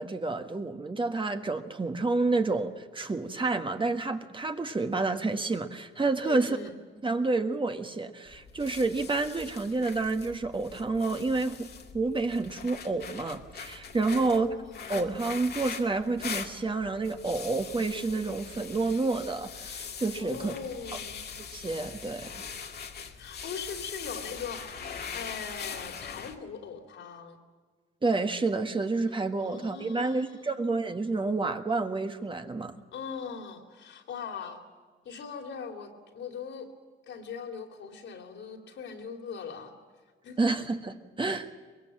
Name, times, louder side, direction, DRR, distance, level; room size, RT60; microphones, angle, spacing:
voice 1, 0.0-6.6 7.0-14.5 14.9-20.5 21.5-22.3 28.0-32.7 40.4-41.5, right 3 dB, 25° right, 1.5 m, -29 dB
voice 2, 6.2-6.8 14.1-15.1 20.2-21.3 23.2-24.8 25.1-27.4 29.4-30.5 32.9-34.6 35.0-36.7 37.1-39.7 40.2-40.6 41.2-41.5, left 6 dB, 70° left, 3.4 m, -40 dB
sound 1, 8.3-26.4, left 6 dB, 55° left, 2.0 m, -42 dB
23.5 x 21.0 x 7.6 m
cardioid pair, 90°, 20 cm